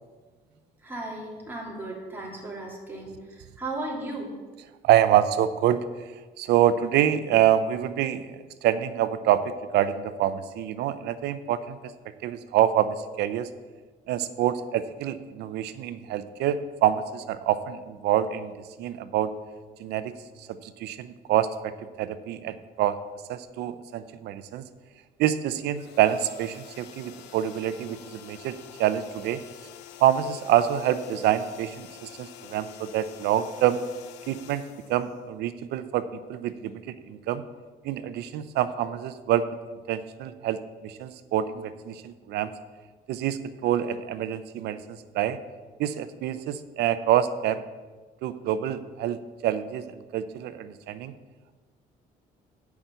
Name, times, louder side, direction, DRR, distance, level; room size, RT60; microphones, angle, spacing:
voice 1, 0.8-4.3, right 2 dB, 10° right, -4 dB, 3.1 m, -36 dB
voice 2, 4.8-5.8 6.4-11.9 12.2-13.5 14.1-19.3 19.8-21.7 22.0-23.0 23.3-24.6 25.2-29.4 30.0-33.8 34.3-34.6 34.9-37.4 37.8-39.5 39.9-42.5 43.1-45.4 45.8-47.7 48.2-51.1, right 11 dB, 75° right, 13 dB, 0.7 m, -26 dB
sound 1, 25.7-35.7, left 11 dB, 90° left, 0.7 m, -47 dB
8.6 x 5.9 x 8.0 m, 1.3 s
cardioid pair, 110°, 17 cm